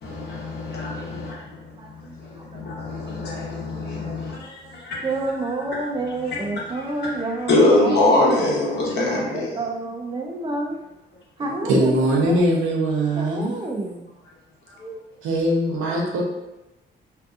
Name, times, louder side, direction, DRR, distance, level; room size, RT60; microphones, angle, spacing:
voice 1, 0.0-1.6 2.2-5.1 5.8-9.6 14.8-15.0, left 2 dB, 55° left, -4 dB, 0.9 m, -24 dB
voice 2, 1.7-2.6 5.0-8.8 9.1-10.7 11.4-12.4 13.2-14.0, right 2 dB, 25° right, 1 dB, 0.4 m, -29 dB
voice 3, 11.6-13.6 15.2-16.2, right 1 dB, 90° right, -1 dB, 0.7 m, -21 dB
2.7 x 2.4 x 2.3 m, 0.95 s
cardioid pair, 90°, 20 cm